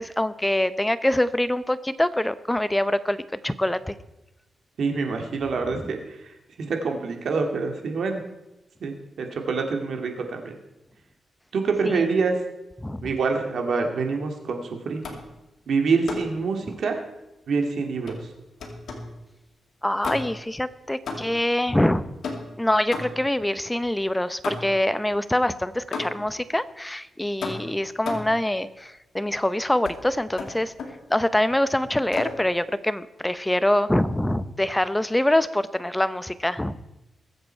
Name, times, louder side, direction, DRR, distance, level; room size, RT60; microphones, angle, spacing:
voice 1, 0.0-3.9 11.8-12.1 12.8-13.1 19.8-22.2 22.6-30.7 31.1-36.8, left 1 dB, 10° left, 14 dB, 0.8 m, -24 dB
voice 2, 4.8-8.2 8.8-10.6 11.5-12.4 13.0-15.0 15.7-17.0 17.5-18.1, right 4 dB, 70° right, 3 dB, 2.3 m, -26 dB
sound 1, 15.0-15.4 16.1-16.4 18.1-19.2 20.0-20.5 21.1-21.5 22.2-23.4 24.4-24.9 25.9-26.4 27.4-28.4 29.8-30.0 30.4-31.0 32.1-32.5, left 3 dB, 75° left, 2.4 m, -34 dB
21.5 x 8.0 x 4.6 m, 0.95 s
cardioid pair, 80°, 0 cm